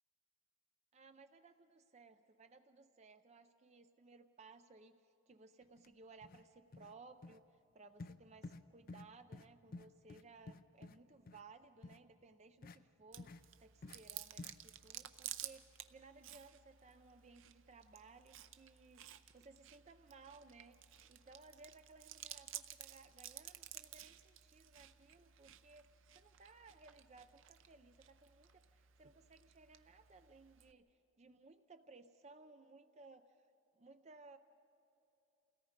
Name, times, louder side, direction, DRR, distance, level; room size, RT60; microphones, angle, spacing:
voice 1, 0.9-33.4 33.8-34.4, right 3 dB, 30° right, 8 dB, 0.5 m, -61 dB
sound 1, 5.8-5.9 6.2-6.4 6.7-6.9 7.2-7.4 8.0-8.2 8.4-8.6 8.9-9.1 9.3-9.5 9.7-11.0 11.3-11.4 11.8-12.0 12.6-12.8 13.2-13.4 13.8-14.0 14.4-14.5, left 3 dB, 40° left, 0.5 m, -51 dB
Chewing mastication, 13.1-30.7, right 12 dB, 60° right, 0.7 m, -54 dB
28.5 x 17.5 x 5.1 m, 2.8 s
head